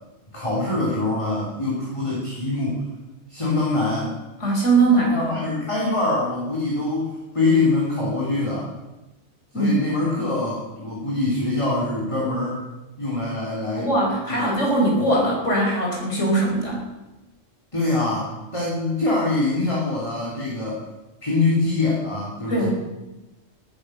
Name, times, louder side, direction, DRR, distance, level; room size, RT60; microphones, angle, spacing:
voice 1, 0.3-2.9 3.3-4.2 5.0-8.7 9.5-12.6 13.0-13.9 14.3-14.5 17.7-20.8 21.2-22.7, left 2 dB, 25° left, -5 dB, 3.6 m, -24 dB
voice 2, 4.4-5.3 9.5-9.8 13.8-16.8 22.5-22.7, right 2 dB, 65° left, -2 dB, 5.5 m, -20 dB
18.0 x 11.0 x 6.6 m, 1.1 s
omnidirectional pair, 1.3 m